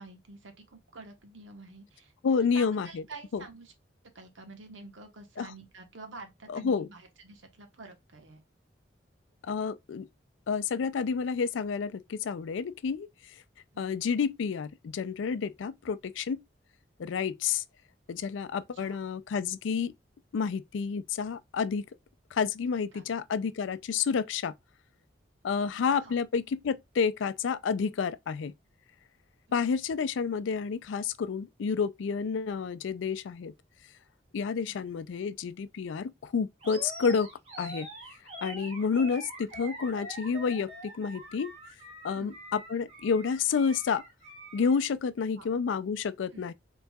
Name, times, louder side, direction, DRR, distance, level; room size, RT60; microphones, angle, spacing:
voice 1, 0.0-3.7 4.1-8.4 13.7-13.9 18.7-19.0 22.9-23.0 25.7-26.1 34.7-34.8 39.6-39.7 42.1-42.3 45.4-45.5 46.3-46.4, right 3 dB, 90° right, 1.1 m, -48 dB
voice 2, 2.2-3.0 3.3-3.4 5.4-5.5 6.5-6.9 9.4-10.1 10.5-13.1 13.8-16.4 17.0-17.6 18.1-19.9 20.3-21.8 22.3-24.5 25.4-28.5 29.5-33.5 34.3-37.3 37.6-37.9 38.4-41.5 42.0-44.0 44.5-46.5, left 6 dB, 85° left, 0.4 m, -30 dB
Animal, 36.6-44.8, right 1 dB, 35° right, 1.4 m, -44 dB
4.4 x 3.8 x 2.3 m
head